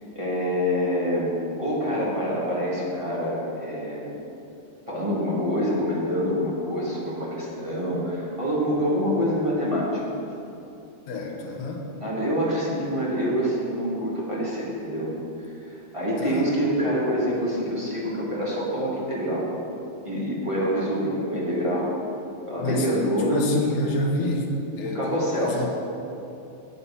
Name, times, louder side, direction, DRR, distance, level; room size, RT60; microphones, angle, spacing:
voice 1, 0.1-4.1 4.9-10.0 12.0-19.5 20.0-21.9 22.5-23.4 24.8-25.7, equal, 15° right, -7 dB, 1.5 m, -26 dB
voice 2, 11.1-11.9 16.2-16.4 22.5-23.1 23.3-25.7, left 1 dB, 85° left, 0 dB, 2.6 m, -28 dB
10.0 x 8.3 x 5.6 m, 2.8 s
omnidirectional pair, 3.5 m